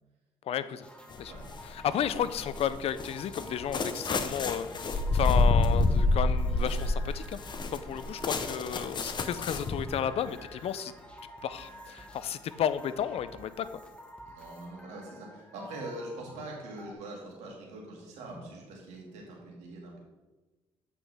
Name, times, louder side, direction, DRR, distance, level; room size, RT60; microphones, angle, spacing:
voice 1, 0.5-0.9 1.2-1.3 1.6-7.4 7.7-10.9 11.4-13.8, left 9 dB, 65° left, 14 dB, 0.5 m, -32 dB
sound 1, 0.8-16.9, equal, 10° left, 1.4 m, -50 dB
sound 2, 1.1-1.6 2.1-9.9, left 2 dB, 45° left, 0.8 m, -28 dB
voice 2, 1.8-2.2 7.8-8.0 14.2-20.0, right 2 dB, 85° right, -1 dB, 2.0 m, -43 dB
8.4 x 5.5 x 3.4 m, 1.2 s
cardioid pair, 75°, 11 cm